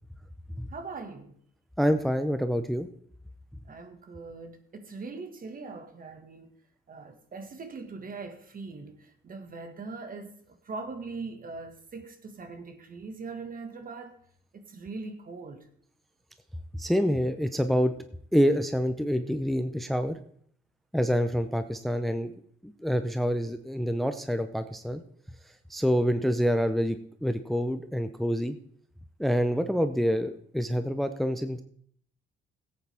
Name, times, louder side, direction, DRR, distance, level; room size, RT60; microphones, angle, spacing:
voice 1, 0.7-1.4 3.6-6.6 6.9-14.2 14.5-15.7, right 4 dB, 45° right, 1.7 m, -41 dB
voice 2, 1.8-2.9 16.8-17.9 18.3-20.2 20.9-22.3 22.6-25.0 25.7-28.6 29.2-31.6, equal, ahead, 0.6 m, -27 dB
16.5 x 8.5 x 3.5 m
cardioid pair, 90°, 20 cm